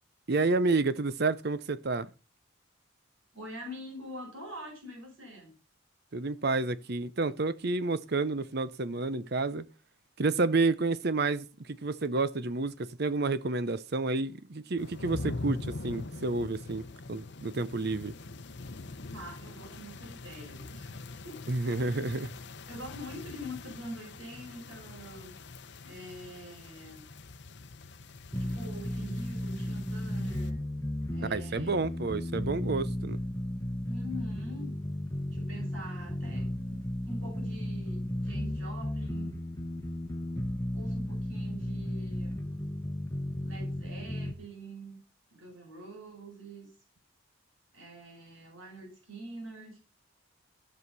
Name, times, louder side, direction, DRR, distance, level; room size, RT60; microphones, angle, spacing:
voice 1, 0.3-2.1 6.1-9.7 10.2-18.1 21.5-22.4 31.2-33.2, right 3 dB, 50° right, 0.7 m, -30 dB
voice 2, 3.3-5.5 19.1-21.0 21.2-21.4 22.7-25.4 25.8-27.0 28.4-30.6 31.1-31.9 33.9-34.7 35.3-39.4 40.7-42.4 43.4-45.0 45.3-46.7 47.7-49.8, equal, 75° right, 5.1 m, -45 dB
sound 1, 14.8-30.5, left 3 dB, 55° left, 0.8 m, -43 dB
sound 2, 28.3-44.3, left 1 dB, 15° left, 1.0 m, -34 dB
13.5 x 6.3 x 5.5 m
head